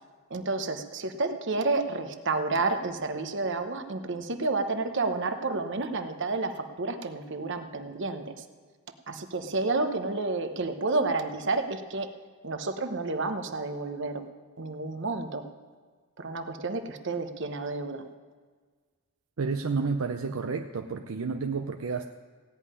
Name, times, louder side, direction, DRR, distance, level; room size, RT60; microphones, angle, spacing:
voice 1, 0.3-8.4 9.1-12.1 12.4-14.2 14.6-15.4 16.2-18.0, right 3 dB, 55° right, 8 dB, 1.0 m, -30 dB
voice 2, 19.4-22.0, right 4 dB, 75° right, 5 dB, 0.6 m, -30 dB
16.5 x 5.6 x 9.7 m, 1.5 s
head